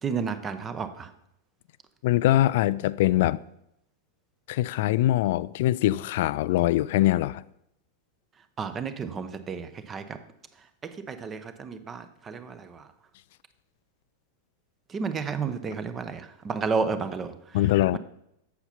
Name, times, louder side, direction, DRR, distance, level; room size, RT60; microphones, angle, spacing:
voice 1, 0.0-1.1 8.6-10.2 10.6-12.9 14.9-18.0, right 5 dB, 20° right, 0.8 m, -32 dB
voice 2, 2.0-3.4 4.5-7.4 17.5-18.0, left 15 dB, 50° left, 0.4 m, -23 dB
8.2 x 6.9 x 5.8 m
figure-of-eight pair, 90°, 0 cm